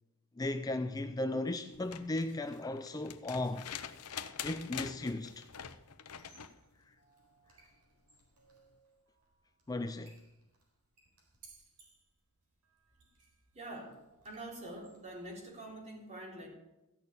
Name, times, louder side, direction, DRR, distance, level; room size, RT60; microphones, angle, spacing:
voice 1, 0.4-3.7 4.4-5.5 6.9-7.0 9.7-10.2, left 2 dB, 15° left, 0.4 m, -36 dB
sound 1, 1.7-6.6 8.2-8.3, left 8 dB, 85° left, 0.8 m, -45 dB
Squeak, 6.1-15.7, right 4 dB, 85° right, 4.3 m, -65 dB
voice 2, 13.5-14.0 14.2-16.5, right 1 dB, 30° right, 3.6 m, -45 dB
15.0 x 6.7 x 8.5 m
head